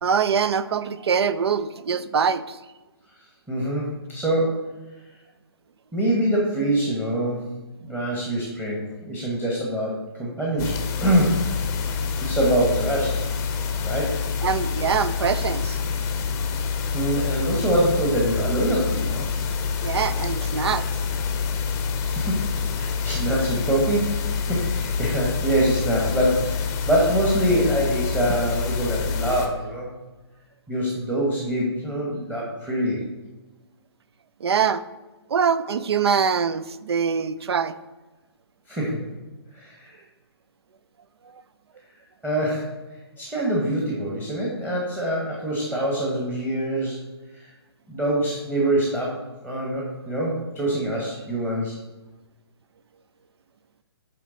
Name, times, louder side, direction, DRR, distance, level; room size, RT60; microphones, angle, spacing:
voice 1, 0.0-2.6 14.4-15.8 19.8-20.9 34.4-34.8 35.3-37.7, right 6 dB, 70° right, 14 dB, 0.4 m, -23 dB
voice 2, 3.5-4.7 5.9-7.5 7.8-11.8 12.2-13.2 13.8-14.2 16.9-19.2 22.0-22.4 22.7-29.9 30.7-33.0 38.7-39.1 39.5-40.0 42.2-42.7 43.2-47.0 47.3-47.5 47.9-51.8, right 1 dB, 10° right, -5 dB, 1.1 m, -25 dB
sound 1, 10.6-29.5, left 6 dB, 20° left, 0.6 m, -27 dB
8.6 x 3.3 x 3.8 m, 1.2 s
figure-of-eight pair, 135°, 14 cm